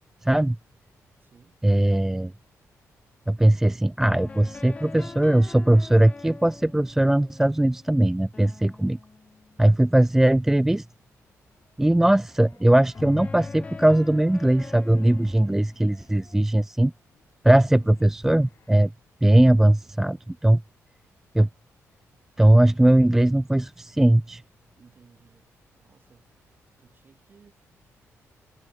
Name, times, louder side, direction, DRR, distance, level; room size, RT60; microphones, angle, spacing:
voice 1, 0.2-0.6 1.6-2.3 3.3-9.0 9.6-10.9 11.8-16.9 17.4-18.9 19.2-20.6 21.3-21.5 22.4-24.4, right 1 dB, 5° right, 0.3 m, -19 dB
voice 2, 1.2-1.6 17.6-18.0 24.8-27.6, right 5 dB, 35° right, 6.4 m, -58 dB
sound 1, 4.1-9.9 12.9-16.5, left 4 dB, 20° left, 1.0 m, -42 dB
sound 2, 11.4-18.9, left 8 dB, 55° left, 4.1 m, -61 dB
cardioid pair, 145°, 6 cm